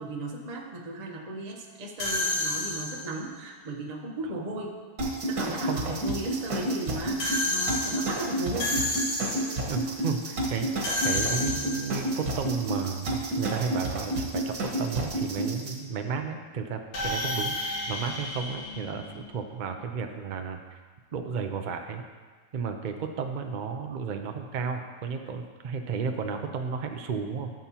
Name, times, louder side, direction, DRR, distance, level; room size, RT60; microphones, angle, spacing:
voice 1, 0.0-4.8 5.3-8.8, right 2 dB, 30° right, -1 dB, 0.9 m, -36 dB
sound 1, 2.0-3.3 7.2-9.7 10.8-12.1 16.9-19.5, left 2 dB, 70° left, 1.9 m, -31 dB
sound 2, 5.0-15.7, right 1 dB, 90° right, 1.9 m, -30 dB
voice 2, 5.6-6.0 9.7-20.6 21.1-22.0 22.5-27.5, right 6 dB, 70° right, 5 dB, 0.4 m, -33 dB
12.5 x 7.3 x 2.9 m, 1.5 s
omnidirectional pair, 1.6 m